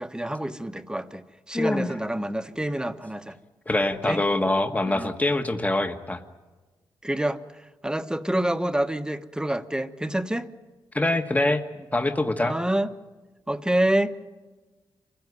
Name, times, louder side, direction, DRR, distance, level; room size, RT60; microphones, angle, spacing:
voice 1, 0.0-3.4 4.1-4.2 4.8-5.1 7.0-10.5 12.4-12.9 13.5-14.2, right 1 dB, 10° right, 1.2 m, -27 dB
voice 2, 1.5-1.9 3.7-6.2 10.9-11.6 11.9-12.6, left 2 dB, 15° left, 1.5 m, -24 dB
26.5 x 16.5 x 9.6 m
cardioid pair, 75°, 9 cm